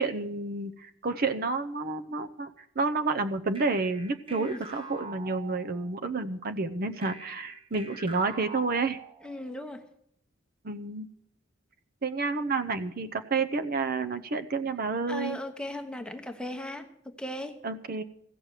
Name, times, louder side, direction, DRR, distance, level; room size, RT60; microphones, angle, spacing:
voice 1, 0.0-2.5 2.8-9.0 10.6-11.1 12.0-15.4 17.6-18.0, right 3 dB, 50° right, 0.7 m, -30 dB
sound 1, 3.6-6.1 7.0-9.5, right 4 dB, 25° right, 1.1 m, -45 dB
voice 2, 4.3-4.6 9.2-9.9 14.7-14.8 15.1-17.6, left 1 dB, 5° left, 1.0 m, -38 dB
15.5 x 6.5 x 9.0 m
head